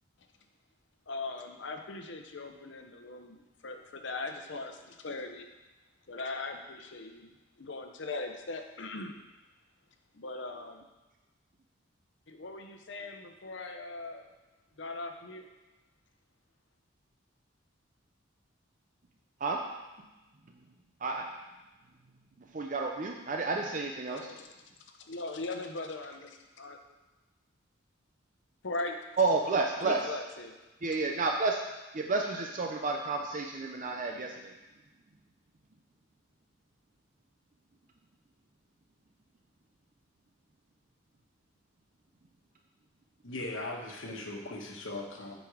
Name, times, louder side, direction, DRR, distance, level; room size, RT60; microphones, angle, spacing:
voice 1, 1.1-5.5 6.1-9.2 10.1-10.8 12.3-14.3 14.8-15.4 24.1-24.5 25.0-26.8 28.6-29.0 29.8-30.6, left 3 dB, 65° left, 5 dB, 0.8 m, -40 dB
voice 2, 22.4-24.3 29.2-30.1 30.8-31.6 31.9-34.5, right 3 dB, 40° right, 2 dB, 0.5 m, -31 dB
voice 3, 43.2-45.4, left 2 dB, 85° left, 1 dB, 1.2 m, -39 dB
7.8 x 5.3 x 4.9 m, 1.1 s
head